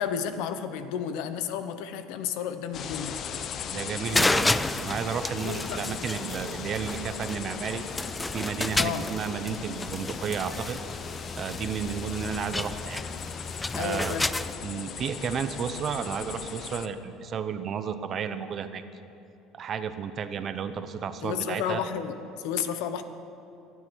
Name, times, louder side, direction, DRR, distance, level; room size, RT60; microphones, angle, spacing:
voice 1, 0.0-3.2 5.4-6.0 8.8-9.1 13.7-14.3 21.2-23.0, left 8 dB, 80° left, 10 dB, 1.0 m, -32 dB
sound 1, 2.7-16.9, left 7 dB, 45° left, 0.8 m, -38 dB
voice 2, 3.7-7.8 8.3-10.8 11.3-13.0 13.7-14.1 14.6-18.8 19.5-21.8, right 7 dB, 40° right, 10 dB, 0.9 m, -32 dB
sound 2, 4.0-14.5, left 2 dB, 10° left, 0.4 m, -31 dB
24.0 x 9.5 x 6.3 m, 2.8 s
cardioid pair, 140°, 0 cm